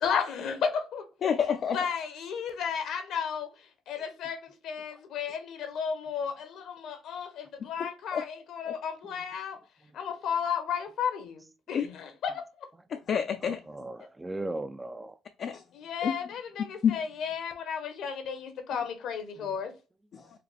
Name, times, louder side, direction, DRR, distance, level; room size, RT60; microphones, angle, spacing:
voice 1, 0.0-1.0 1.7-3.5 3.9-9.6 9.9-11.4 11.7-12.7 15.7-19.7, left 7 dB, 75° left, 1.0 m, -33 dB
voice 2, 1.2-1.8 7.8-8.2 8.7-8.8 11.7-11.9 12.9-13.6 15.4-15.6 16.0-16.1 16.8-17.0 20.1-20.3, left 7 dB, 55° left, 0.4 m, -28 dB
voice 3, 13.4-15.2 19.4-19.5 20.2-20.3, right 2 dB, 15° right, 0.3 m, -38 dB
4.8 x 2.2 x 3.3 m
cardioid pair, 95°, 0 cm